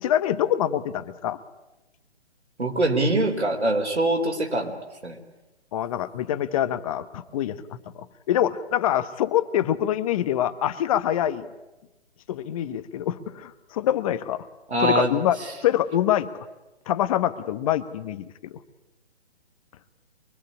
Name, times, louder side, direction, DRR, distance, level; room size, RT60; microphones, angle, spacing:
voice 1, 0.0-1.4 5.7-11.5 12.3-14.5 14.8-15.4 15.6-16.3 16.9-18.6, left 11 dB, 35° left, 13 dB, 1.2 m, -25 dB
voice 2, 2.6-5.2 14.7-15.1, right 2 dB, 90° right, 4 dB, 4.4 m, -24 dB
24.0 x 23.5 x 9.9 m, 1.0 s
hypercardioid pair, 140°, 33 cm